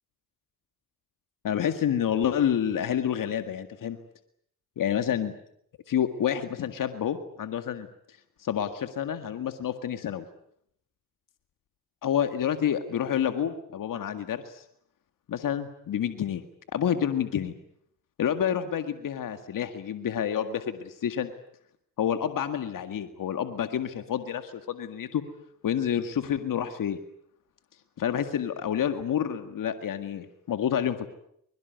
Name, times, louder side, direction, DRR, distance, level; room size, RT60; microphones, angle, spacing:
voice 1, 1.4-4.0 4.8-5.3 5.9-7.9 8.4-10.2 12.0-14.6 15.3-16.4 16.7-17.5 18.2-21.3 22.0-25.2 25.6-27.0 28.0-31.1, left 9 dB, 70° left, 9 dB, 2.0 m, -28 dB
23.0 x 22.0 x 9.4 m, 0.70 s
supercardioid pair, 50°, 34 cm